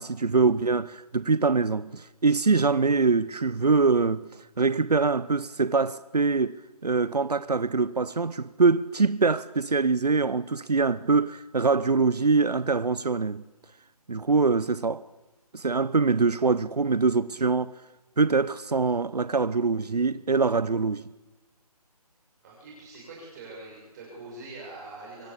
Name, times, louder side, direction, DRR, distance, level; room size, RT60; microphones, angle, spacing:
voice 1, 0.0-4.2 4.6-13.4 14.1-15.0 15.5-17.7 18.2-21.0, right 4 dB, 85° right, 0.9 m, -24 dB
voice 2, 22.4-25.3, right 2 dB, 25° right, 6.7 m, -43 dB
27.0 x 24.5 x 8.5 m
figure-of-eight pair, 155°, 20 cm